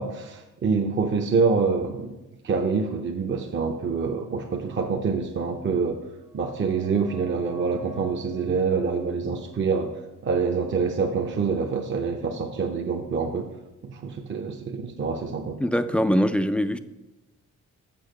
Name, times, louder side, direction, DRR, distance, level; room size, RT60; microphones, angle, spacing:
voice 1, 0.0-2.2 2.4-6.0 6.3-9.9 10.2-13.5 13.8-15.6, right 5 dB, 40° right, 3 dB, 0.7 m, -26 dB
sound 1, 6.1-11.4 11.7-11.8, right 3 dB, 75° right, 1.6 m, -46 dB
voice 2, 15.6-16.8, equal, 5° left, 11 dB, 0.3 m, -22 dB
7.0 x 5.6 x 6.5 m, 1.0 s
cardioid pair, 120°, 31 cm